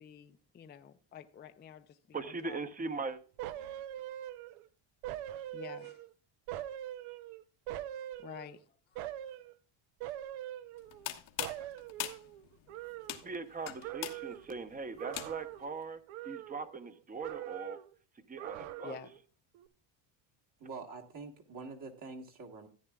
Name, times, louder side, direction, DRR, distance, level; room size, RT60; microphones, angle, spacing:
voice 1, 0.0-2.6 5.5-6.0 8.2-8.6 8.9-9.0 18.8-19.1, left 8 dB, 20° left, 0.4 m, -49 dB
voice 2, 2.1-3.2 13.2-16.0 16.2-17.8 18.3-19.0, right 4 dB, 15° right, 0.8 m, -40 dB
sound 1, 3.4-4.7 5.0-6.1 6.5-8.6 8.9-9.5 10.0-11.1 11.4-13.5 13.8-14.5 15.0-15.8 16.1-16.9 17.2-17.9 18.4-19.2 19.5-19.7, right 13 dB, 85° right, 0.8 m, -43 dB
sound 2, 10.8-15.6, left 13 dB, 70° left, 1.3 m, -42 dB
voice 3, 20.6-22.7, right 4 dB, 40° right, 1.3 m, -45 dB
14.5 x 9.3 x 2.3 m
cardioid pair, 135°, 50 cm